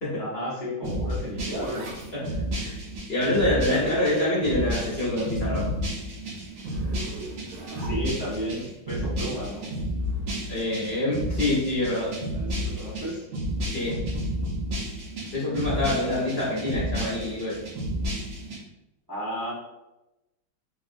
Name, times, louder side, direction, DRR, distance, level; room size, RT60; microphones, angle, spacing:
voice 1, 0.2-2.0 3.7-3.9 7.8-9.7 12.3-13.2 19.1-19.5, equal, 20° right, -9 dB, 0.5 m, -33 dB
sound 1, 0.8-18.6, equal, 55° right, 1.0 m, -31 dB
Zipper (clothing), 0.9-5.4 5.7-8.4 10.0-10.3, right 2 dB, 90° right, 1.5 m, -44 dB
voice 2, 3.1-5.7 10.5-12.1 13.7-14.0 15.3-17.6, left 1 dB, 40° left, -10 dB, 0.9 m, -26 dB
3.5 x 2.4 x 2.5 m, 0.97 s
omnidirectional pair, 2.2 m